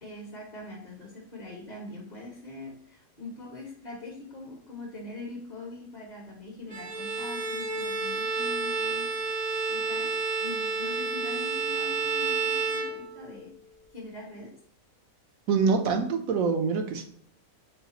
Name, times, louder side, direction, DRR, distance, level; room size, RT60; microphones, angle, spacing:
voice 1, 0.0-9.1 9.7-13.5 13.9-14.5, left 2 dB, 40° left, -2 dB, 0.8 m, -43 dB
Bowed string instrument, 6.7-13.5, right 4 dB, 45° right, 0.6 m, -30 dB
voice 2, 15.5-17.1, right 5 dB, 75° right, 5 dB, 1.1 m, -25 dB
4.0 x 3.3 x 2.9 m, 0.64 s
omnidirectional pair, 1.5 m